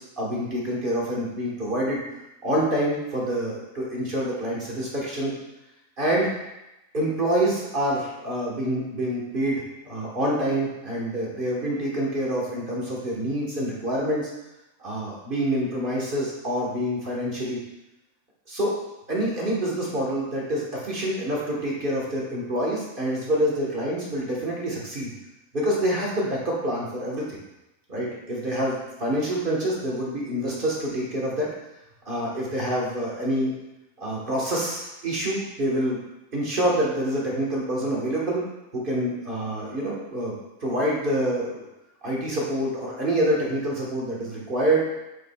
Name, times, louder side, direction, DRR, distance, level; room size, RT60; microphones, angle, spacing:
voice 1, 0.0-2.0 2.4-5.3 6.0-6.3 6.9-14.3 14.8-17.6 18.5-18.8 19.1-25.1 25.5-27.4 27.9-31.6 32.0-33.5 34.0-36.0 36.3-38.4 38.7-40.3 40.6-41.7 42.0-44.8, right 1 dB, 40° right, -4 dB, 1.5 m, -26 dB
7.9 x 5.1 x 2.3 m, 0.95 s
omnidirectional pair, 1.4 m